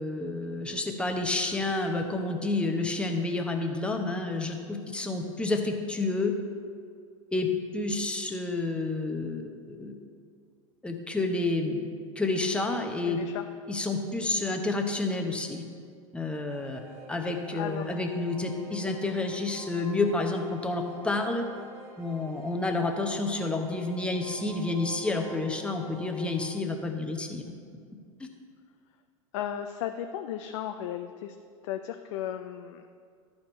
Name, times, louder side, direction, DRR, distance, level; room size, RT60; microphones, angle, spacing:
voice 1, 0.0-6.3 7.3-7.5 7.7-9.4 9.7-9.9 10.8-11.8 12.2-13.2 13.7-15.6 16.1-16.8 17.1-21.4 22.0-27.4 28.2-28.3, left 2 dB, 5° left, 3 dB, 0.9 m, -29 dB
voice 2, 13.1-13.5 17.5-18.0 29.3-31.4 31.6-32.8, left 10 dB, 60° left, 7 dB, 0.4 m, -35 dB
sound 1, 16.5-26.6, right 2 dB, 55° right, 1.8 m, -46 dB
12.5 x 4.4 x 4.4 m, 2.1 s
figure-of-eight pair, 85°, 18 cm